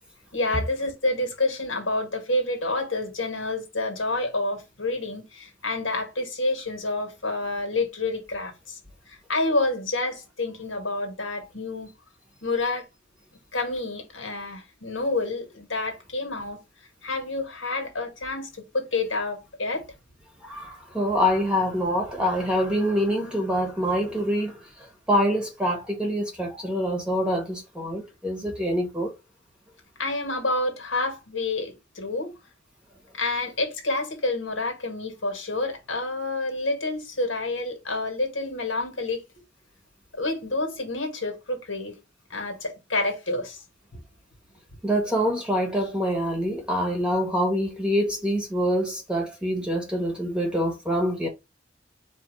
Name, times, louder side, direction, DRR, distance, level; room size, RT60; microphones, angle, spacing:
voice 1, 0.3-8.8 9.3-11.9 12.4-12.9 13.5-16.6 17.0-18.5 18.7-19.8 30.0-32.3 33.2-39.2 40.1-41.9 42.3-43.6, left 2 dB, 85° left, 1.7 m, -28 dB
voice 2, 20.4-24.6 25.1-29.1 44.8-51.3, equal, 5° right, 1.0 m, -25 dB
4.2 x 2.8 x 4.0 m
head